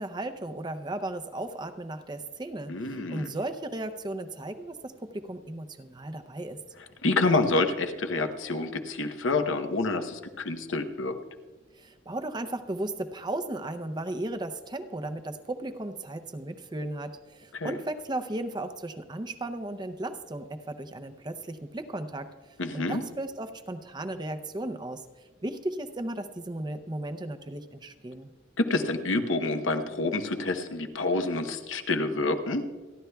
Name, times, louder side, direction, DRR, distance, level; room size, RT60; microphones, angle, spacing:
voice 1, 0.0-6.6 11.7-22.3 22.7-25.1 25.4-28.3, right 1 dB, 20° right, 8 dB, 0.5 m, -35 dB
voice 2, 2.7-3.3 7.0-11.2 17.5-17.7 22.6-23.0 28.6-32.6, left 3 dB, 80° left, 7 dB, 0.9 m, -28 dB
28.5 x 11.0 x 2.3 m, 1.3 s
head